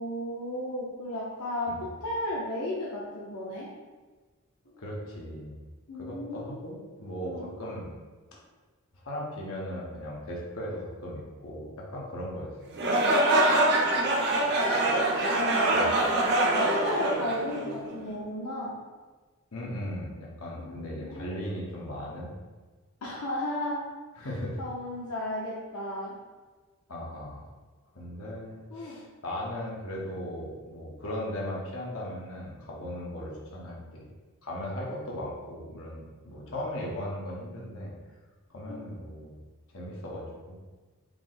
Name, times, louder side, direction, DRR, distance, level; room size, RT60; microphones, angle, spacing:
voice 1, 0.0-3.7 5.9-6.6 7.2-7.5 13.9-14.4 15.1-16.0 16.5-18.7 20.6-21.4 23.0-23.8 24.2-24.3 24.6-26.1 28.7-28.9 38.7-38.8, left 1 dB, 90° left, -5 dB, 0.7 m, -34 dB
voice 2, 4.6-5.6 6.0-7.9 8.3-8.4 9.0-12.6 15.7-15.9 19.5-22.4 24.2-24.6 26.9-27.4 27.9-34.0 34.4-37.9 38.5-39.3 39.7-40.6, equal, 75° left, -4 dB, 1.0 m, -37 dB
sound 1, 12.7-17.9, right 1 dB, 50° right, 0.5 m, -24 dB
4.7 x 2.0 x 3.8 m, 1.3 s
head